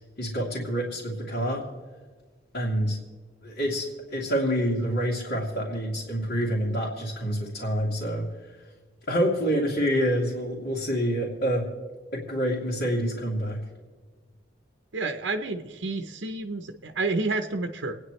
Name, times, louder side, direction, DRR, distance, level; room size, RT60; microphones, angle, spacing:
voice 1, 0.2-1.6 2.5-3.0 3.4-8.3 9.1-11.6 12.1-13.6, equal, 65° left, -8 dB, 2.8 m, -27 dB
voice 2, 14.9-18.0, right 3 dB, 85° right, 5 dB, 0.8 m, -30 dB
29.5 x 9.9 x 3.2 m, 1.4 s
head